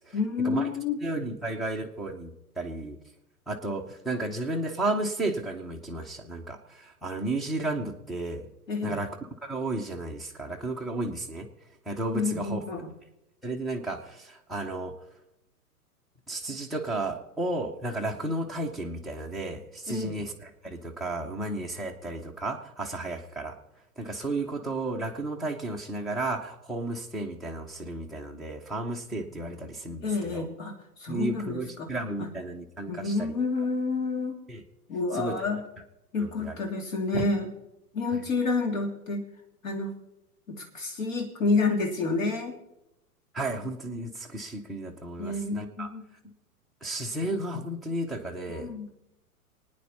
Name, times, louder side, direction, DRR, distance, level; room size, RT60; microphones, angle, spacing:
voice 1, 0.1-1.0 8.7-9.0 12.1-12.9 19.9-20.1 30.0-30.7 31.0-31.9 32.2-32.3 32.9-34.4 34.9-35.6 36.1-37.5 37.9-39.2 39.6-40.0 40.5-42.6 45.2-46.1 48.5-48.9, left 3 dB, 55° left, 4 dB, 2.9 m, -29 dB
voice 2, 1.0-3.0 3.5-8.5 8.8-9.1 9.4-11.5 11.9-12.6 13.4-14.9 16.3-23.5 24.0-30.5 31.1-33.3 34.5-34.6 35.2-35.4 36.2-36.6 37.1-37.3 38.1-38.2 43.3-45.9 46.8-48.7, right 2 dB, ahead, -3 dB, 0.5 m, -33 dB
24.5 x 9.6 x 4.1 m, 0.88 s
figure-of-eight pair, 110°, 46 cm